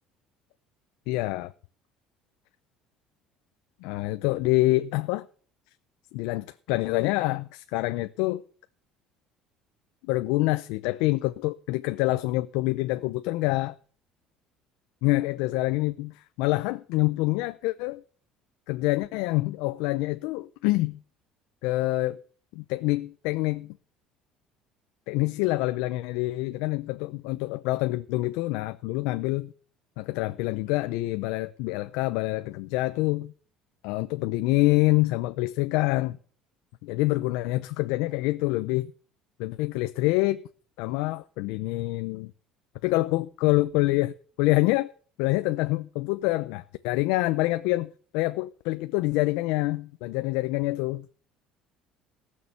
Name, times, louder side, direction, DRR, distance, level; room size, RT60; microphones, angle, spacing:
voice 1, 1.1-1.5 3.8-5.3 6.1-8.4 10.1-13.8 15.0-18.0 18.7-21.0 21.6-22.2 22.5-23.8 25.1-29.5 30.0-33.3 33.8-36.2 36.8-38.9 39.4-40.4 40.8-42.3 42.8-44.9 45.2-51.1, left 20 dB, 85° left, 0.5 m, -26 dB
17.5 x 6.4 x 7.0 m
cardioid pair, 175°, 0 cm